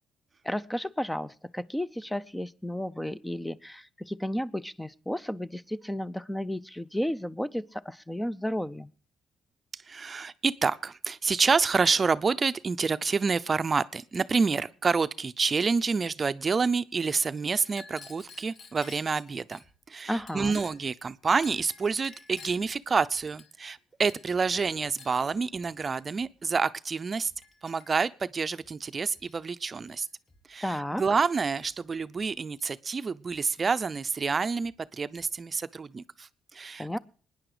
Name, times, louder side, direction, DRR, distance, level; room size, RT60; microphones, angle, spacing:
voice 1, 0.4-8.9 20.1-20.6 30.6-31.0 36.8-37.0, equal, 5° left, 0.6 m, -33 dB
voice 2, 9.7-27.3 27.6-30.1 30.5-37.0, right 5 dB, 35° right, 0.6 m, -28 dB
Chink clink, 17.6-19.7 20.3-20.9 21.4-22.7 23.3-23.8 24.1-24.4 25.0-25.2 25.9-26.1 26.9-27.0 27.4-28.1 28.8-29.4 29.7-30.1 31.1-31.8 32.6-32.7 33.0-33.9, left 4 dB, 45° left, 1.9 m, -52 dB
sound 1, 19.4-20.5 20.9-21.0 21.3-21.4 21.9-22.0 22.4-22.8 23.1-23.6 23.9-24.0 24.3-24.4 24.9-25.0 25.4-26.5 26.9-27.0 27.3-27.4 27.9-28.0 28.4-28.8 29.1-30.0 30.3-30.4 30.9-31.0 31.4-32.5 32.9-33.0 33.3-33.4 33.9-34.0 34.4-34.8 35.1-35.6 35.9-36.0, left 1 dB, 30° left, 4.8 m, -65 dB
21.5 x 10.0 x 5.0 m
cardioid pair, 90°, 0 cm